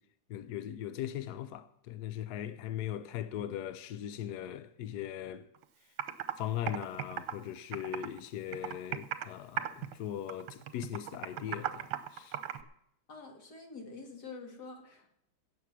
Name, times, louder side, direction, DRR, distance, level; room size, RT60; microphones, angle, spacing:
voice 1, 0.3-5.5 6.4-12.4, left 11 dB, 75° left, 0.9 m, -39 dB
Computer keyboard, 5.5-5.6 6.0-6.3 6.7-8.2 8.5-9.3 9.6-10.0 10.3-12.6, right 11 dB, 70° right, 1.5 m, -36 dB
voice 2, 13.1-15.1, left 4 dB, 50° left, 2.6 m, -47 dB
16.5 x 7.6 x 6.1 m
omnidirectional pair, 2.4 m